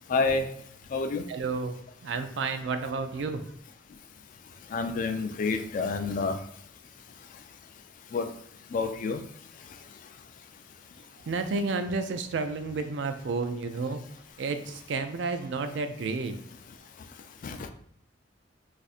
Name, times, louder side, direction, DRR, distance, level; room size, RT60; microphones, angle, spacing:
voice 1, 0.1-0.6 0.9-1.2 4.6-6.4 7.3-7.4 8.1-8.4 8.7-9.3 9.5-10.1 17.1-17.2 17.4-17.7, left 4 dB, 45° left, 7 dB, 0.3 m, -30 dB
voice 2, 1.3-3.5 11.3-14.0 14.4-16.4, right 4 dB, 75° right, 8 dB, 0.4 m, -31 dB
2.5 x 2.4 x 4.1 m, 0.64 s
head